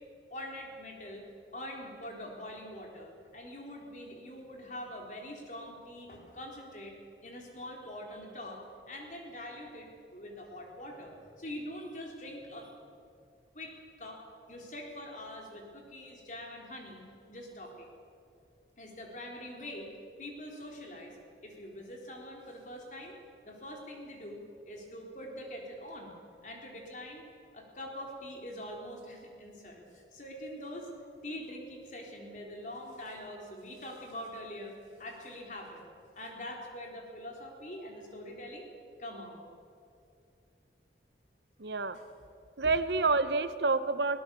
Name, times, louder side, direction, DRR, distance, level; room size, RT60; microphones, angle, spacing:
voice 1, 0.3-1.2 1.5-7.0 7.2-12.7 13.5-14.2 14.5-17.0 17.3-17.9 18.8-19.9 20.2-23.1 23.4-26.1 26.4-27.3 27.5-30.9 31.2-35.9 36.1-38.7 39.0-39.4, left 1 dB, 45° left, 1 dB, 3.8 m, -44 dB
voice 2, 41.6-42.0 42.6-44.2, right 3 dB, 75° right, 12 dB, 0.9 m, -28 dB
22.0 x 18.5 x 6.9 m, 2.5 s
head